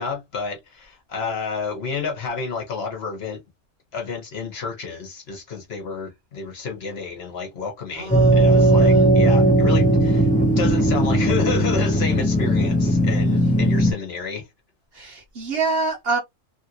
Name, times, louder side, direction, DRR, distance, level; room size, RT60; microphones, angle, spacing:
voice 1, 0.0-3.4 3.9-10.3 10.6-14.5, left 5 dB, 55° left, 1.1 m, -30 dB
voice 2, 7.9-9.0 14.9-16.2, right 3 dB, 55° right, 1.0 m, -27 dB
sound 1, 8.1-13.9, right 1 dB, 10° left, 0.5 m, -17 dB
3.1 x 2.4 x 2.8 m
omnidirectional pair, 1.3 m